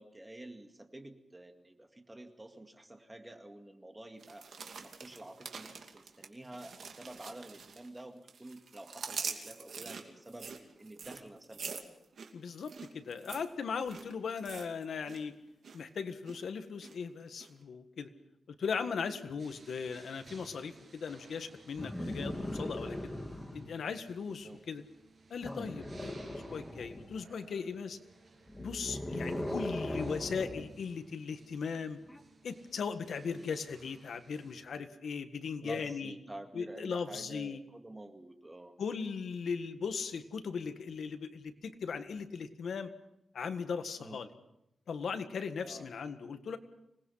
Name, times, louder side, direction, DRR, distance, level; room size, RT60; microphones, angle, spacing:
voice 1, 0.0-4.5 4.8-10.5 10.8-11.8 24.4-24.6 29.2-29.5 33.3-33.6 35.6-38.7 44.0-44.2 45.6-45.9, right 1 dB, 15° right, 5 dB, 2.1 m, -49 dB
sound 1, 4.2-8.0 8.3-15.2 15.5-15.8 16.2-16.9 17.4-17.5, right 5 dB, 65° right, 2.6 m, -45 dB
voice 2, 12.3-15.4 15.7-18.1 18.5-23.1 23.5-24.8 25.3-28.0 28.6-32.0 32.4-36.1 36.5-37.6 38.8-42.9 43.3-44.3 44.9-46.6, left 5 dB, 70° left, 8 dB, 1.7 m, -38 dB
sound 2, 19.4-34.7, right 3 dB, 40° right, 7.8 m, -60 dB
sound 3, 21.8-23.7 25.4-27.2 28.5-30.7 32.1-32.2, left 1 dB, 10° left, 2.1 m, -39 dB
26.0 x 19.5 x 5.8 m, 0.83 s
wide cardioid pair, 135°, 0 cm